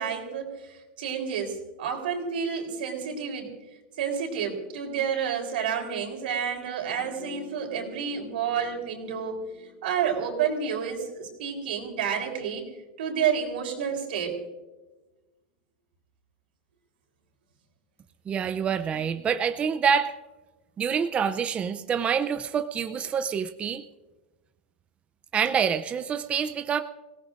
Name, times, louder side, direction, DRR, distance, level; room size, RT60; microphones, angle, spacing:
voice 1, 0.0-3.5 4.0-9.4 9.8-12.7 13.0-14.4, right 7 dB, 85° right, 2 dB, 3.9 m, -30 dB
sound 1, 6.9-12.0 12.3-12.4, left 5 dB, 35° left, 1.8 m, -50 dB
voice 2, 18.3-20.2 20.8-23.8 25.3-26.8, right 7 dB, 25° right, 9 dB, 0.5 m, -26 dB
26.0 x 17.5 x 2.6 m, 1.2 s
supercardioid pair, 130°, 5 cm